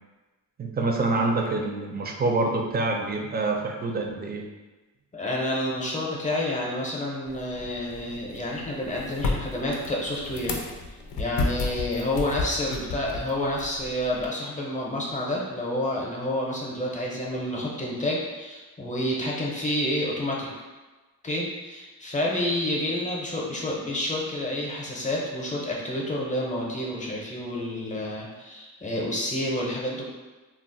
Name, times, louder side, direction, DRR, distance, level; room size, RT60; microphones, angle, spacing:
voice 1, 0.6-4.4, right 3 dB, 30° right, 2 dB, 0.4 m, -26 dB
voice 2, 5.1-10.6 11.2-20.5 21.2-30.1, left 1 dB, 20° left, -3 dB, 0.7 m, -29 dB
sound 1, 7.3-14.3, left 3 dB, 70° left, 0.6 m, -33 dB
2.3 x 2.1 x 3.8 m, 1.2 s
cardioid pair, 105°, 35 cm